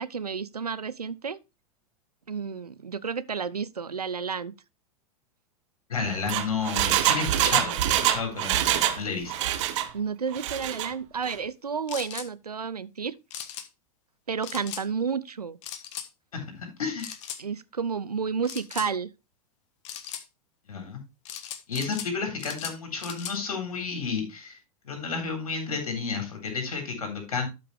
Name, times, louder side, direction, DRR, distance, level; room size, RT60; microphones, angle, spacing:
voice 1, 0.0-1.4 2.3-4.5 9.9-13.2 14.3-15.6 17.4-19.1, right 6 dB, 85° right, 0.6 m, -31 dB
voice 2, 5.9-9.5 16.3-17.1 20.7-21.0 21.7-24.6 24.8-27.5, left 5 dB, 70° left, 3.7 m, -31 dB
Engine, 6.0-9.0 9.3-9.9 10.3-10.9 11.2-11.3, right 12 dB, 50° right, 1.0 m, -25 dB
sound 1, 11.9-12.3 13.3-13.7 14.4-14.8 15.6-16.1 17.0-17.4 18.4-18.9 19.8-20.2 21.3-22.1 22.4-23.4, left 9 dB, 50° left, 1.3 m, -38 dB
12.0 x 5.7 x 3.3 m
figure-of-eight pair, 90°, 19 cm